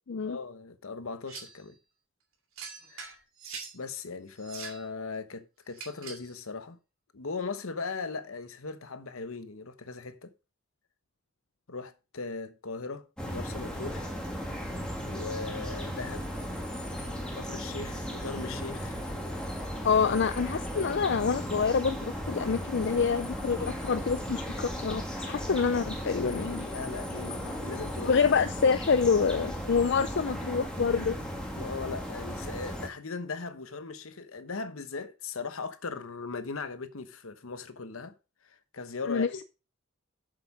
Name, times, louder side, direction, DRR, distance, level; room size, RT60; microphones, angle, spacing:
voice 1, 0.2-1.8 2.9-3.1 3.7-6.8 7.1-10.3 11.7-14.2 15.0-16.3 17.4-19.0 19.4-19.6 26.6-28.5 31.5-38.1 38.4-39.4, left 4 dB, 70° left, 1.0 m, -39 dB
sound 1, 1.3-1.6 2.6-3.8 4.4-4.9 5.7-6.3, right 5 dB, 75° right, 2.7 m, -43 dB
sound 2, 13.2-32.9, equal, 5° left, 1.9 m, -36 dB
voice 2, 19.8-26.7 28.1-31.2 39.1-39.4, left 5 dB, 55° left, 0.5 m, -27 dB
7.3 x 6.8 x 5.4 m
head